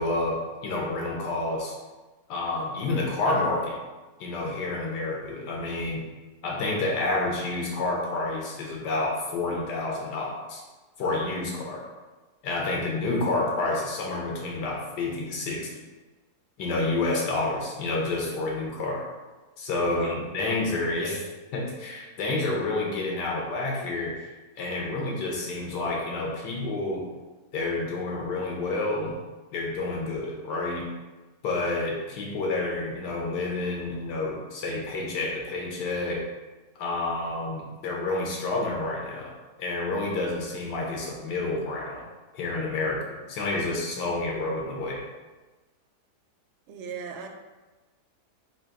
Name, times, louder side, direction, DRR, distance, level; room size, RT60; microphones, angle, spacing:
voice 1, 0.0-1.7 2.3-3.8 4.2-6.1 6.4-10.6 11.0-11.8 12.4-15.7 16.6-19.1 19.6-24.2 24.6-27.0 27.5-29.2 29.5-30.9 31.4-36.2 36.8-39.3 39.6-42.0 42.3-45.0, left 2 dB, 90° left, -1 dB, 1.5 m, -29 dB
voice 2, 19.8-20.2 46.7-47.3, right 6 dB, 65° right, 2 dB, 0.8 m, -37 dB
3.9 x 2.8 x 4.6 m, 1.2 s
omnidirectional pair, 1.8 m